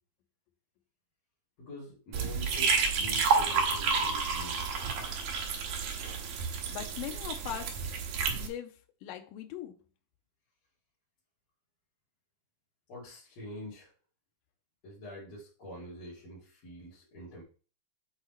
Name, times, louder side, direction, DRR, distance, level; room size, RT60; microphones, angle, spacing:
voice 1, 1.6-4.6 12.9-13.9 14.8-17.4, left 1 dB, 50° left, 3.5 m, -45 dB
sound 1, 2.1-8.5, right 5 dB, 90° right, 2.9 m, -30 dB
voice 2, 6.7-7.8 8.3-9.7, left 11 dB, 90° left, 2.4 m, -40 dB
7.9 x 4.0 x 4.3 m
omnidirectional pair, 3.9 m